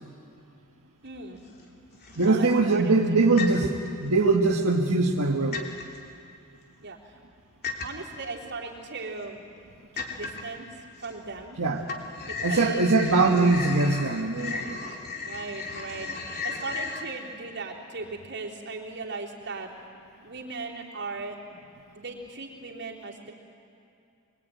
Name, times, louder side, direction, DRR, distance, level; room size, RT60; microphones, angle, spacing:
voice 1, 1.0-1.4 2.2-3.3 6.8-7.1 7.8-9.4 9.9-10.7 11.0-11.6 12.3-12.9 15.2-19.7 20.2-21.6 22.0-23.3, right 3 dB, 55° right, -2 dB, 3.5 m, -38 dB
sound 1, 1.2-1.6 2.0-2.6 3.4-3.9 4.5-5.2 5.5-6.0 7.6-8.2 8.8-8.9 9.3-9.4 10.0-10.6 11.0-11.6 11.8-17.0, left 4 dB, 45° left, 2.9 m, -35 dB
voice 2, 2.2-3.7 4.0-5.6 11.6-11.8 12.4-14.8, right 3 dB, 75° right, 0 dB, 1.5 m, -22 dB
24.0 x 22.5 x 9.3 m, 2.6 s
head